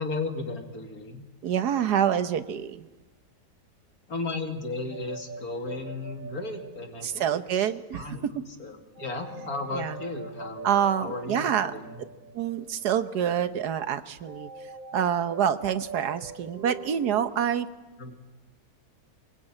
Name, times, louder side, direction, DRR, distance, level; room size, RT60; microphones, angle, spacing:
voice 1, 0.0-1.2 4.1-7.7 7.9-8.3 8.6-10.7 11.0-11.9 18.0-18.1, left 3 dB, 65° left, 4 dB, 2.9 m, -35 dB
voice 2, 1.4-2.8 7.0-8.1 9.7-10.0 10.6-11.7 12.3-14.5 14.9-17.7, right 9 dB, 85° right, 12 dB, 1.6 m, -26 dB
sound 1, 4.9-7.6 8.9-12.9 14.2-17.3, right 4 dB, 35° right, 1.1 m, -43 dB
24.0 x 20.5 x 9.0 m, 1.2 s
omnidirectional pair, 1.7 m